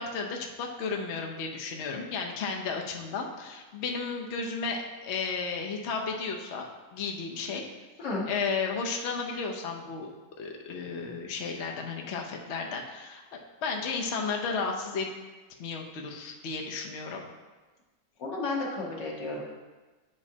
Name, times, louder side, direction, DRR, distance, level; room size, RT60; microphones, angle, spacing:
voice 1, 0.0-6.7 6.9-7.6 8.3-10.1 10.4-13.2 13.6-15.1 15.6-17.2, left 4 dB, 55° left, 1 dB, 0.8 m, -33 dB
voice 2, 18.2-19.4, left 3 dB, 90° left, -2 dB, 1.9 m, -32 dB
9.4 x 5.1 x 2.7 m, 1.2 s
omnidirectional pair, 1.8 m